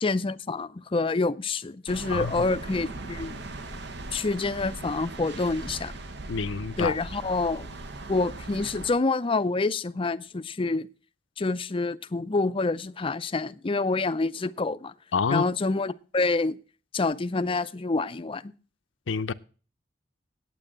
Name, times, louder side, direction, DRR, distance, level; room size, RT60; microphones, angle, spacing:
voice 1, 0.0-3.4 4.1-5.9 6.8-7.7 8.1-10.9 11.4-14.9 15.3-16.6 16.9-18.5, left 3 dB, 30° left, 0.5 m, -27 dB
sound 1, 1.9-8.9, right 2 dB, 65° right, 1.0 m, -39 dB
voice 2, 2.1-2.4 6.3-7.0 15.1-15.4 19.1-19.3, left 5 dB, 80° left, 0.6 m, -27 dB
8.9 x 8.9 x 7.4 m
head